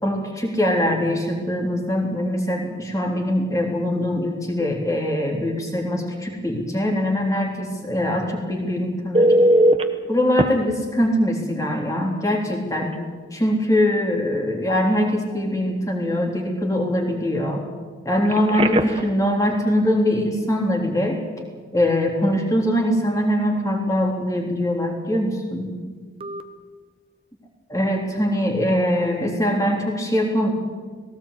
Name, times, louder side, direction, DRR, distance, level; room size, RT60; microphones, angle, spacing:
voice 1, 0.0-9.3 10.1-13.0 13.3-17.6 18.1-21.2 21.7-25.7 27.7-30.5, left 1 dB, 20° left, 0 dB, 3.5 m, -22 dB
Telephone, 9.1-9.8 10.4-10.5 12.2-12.4 12.8-13.0 18.2-19.1 26.2-26.4, right 1 dB, 30° right, 1.1 m, -18 dB
19.0 x 17.5 x 8.4 m, 1.5 s
head